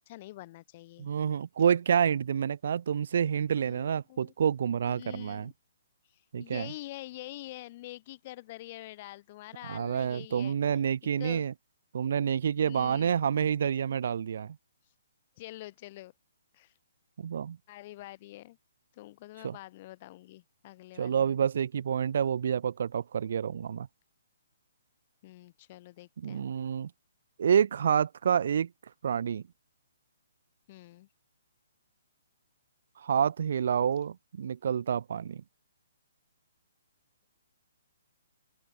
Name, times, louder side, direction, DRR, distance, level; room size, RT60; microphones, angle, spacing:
voice 1, 0.0-1.1 3.6-4.3 4.9-5.5 6.1-11.5 12.6-13.2 15.4-16.1 16.5-16.7 17.7-18.6 18.9-21.4 25.2-26.5 30.7-31.1, left 17 dB, 35° left, 7.3 m, -46 dB
voice 2, 1.0-5.5 6.3-6.7 9.7-11.5 11.9-14.6 17.2-17.6 19.4-19.6 21.0-23.9 26.2-26.9 27.4-28.7 29.0-29.4 33.0-35.4, right 8 dB, 60° right, 1.2 m, -28 dB
hypercardioid pair, 160°, 0 cm